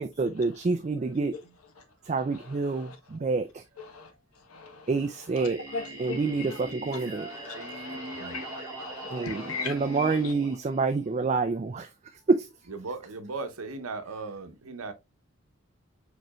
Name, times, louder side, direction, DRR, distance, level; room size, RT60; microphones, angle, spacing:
voice 1, 0.0-1.3 2.1-3.6 4.9-5.6 6.0-7.3 9.1-11.9 12.3-12.5, right 4 dB, 30° right, 0.3 m, -27 dB
Singing, 5.3-11.3, right 2 dB, 15° right, 1.7 m, -41 dB
voice 2, 7.4-10.1, left 4 dB, 90° left, 1.0 m, -37 dB
voice 3, 12.7-14.9, right 3 dB, 80° right, 0.8 m, -37 dB
5.1 x 4.3 x 2.2 m
head